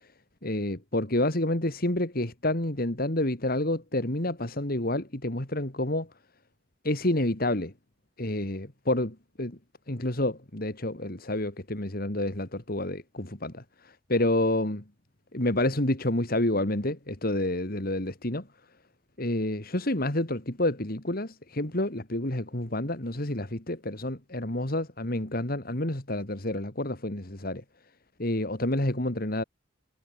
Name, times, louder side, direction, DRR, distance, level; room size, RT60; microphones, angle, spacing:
voice 1, 0.4-6.1 6.8-7.7 8.2-9.6 9.9-14.8 15.3-18.5 19.2-27.6 28.2-29.4, left 1 dB, 50° left, 3.0 m, -29 dB
head